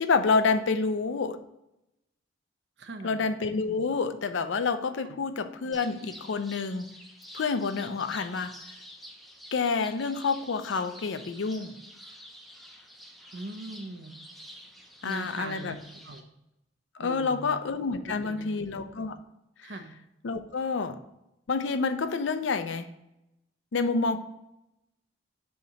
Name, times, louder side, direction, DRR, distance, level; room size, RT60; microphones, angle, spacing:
voice 1, 0.0-1.4 3.0-6.9 7.3-8.5 9.5-11.7 15.0-15.7 16.9-19.2 19.6-19.7 20.2-21.0 21.5-22.9 23.7-24.2, left 4 dB, 70° left, 10 dB, 0.5 m, -28 dB
voice 2, 2.8-3.2 5.0-5.2 13.3-14.1 15.0-16.2 17.0-17.6 17.9-18.5 19.6-19.9, right 2 dB, 60° right, 6 dB, 0.7 m, -40 dB
sound 1, 5.7-16.2, equal, ahead, 0.5 m, -48 dB
7.1 x 2.9 x 5.2 m, 0.88 s
head